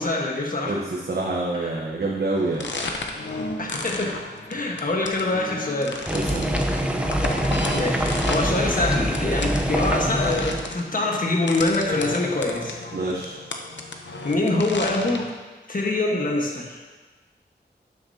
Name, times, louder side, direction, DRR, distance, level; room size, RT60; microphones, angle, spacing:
voice 1, 0.0-0.8 1.6-1.8 3.6-4.1 4.5-6.0 7.7-12.8 14.2-15.3 15.7-16.8, left 2 dB, 50° left, -1 dB, 1.4 m, -25 dB
voice 2, 0.7-2.7 6.1-6.7 12.9-13.4, right 2 dB, 60° right, -3 dB, 1.1 m, -27 dB
sound 1, 2.4-15.3, left 3 dB, 80° left, 0.8 m, -34 dB
sound 2, 6.1-10.7, equal, 5° right, 0.7 m, -24 dB
12.0 x 6.4 x 2.8 m, 1.3 s
wide cardioid pair, 70°, 18 cm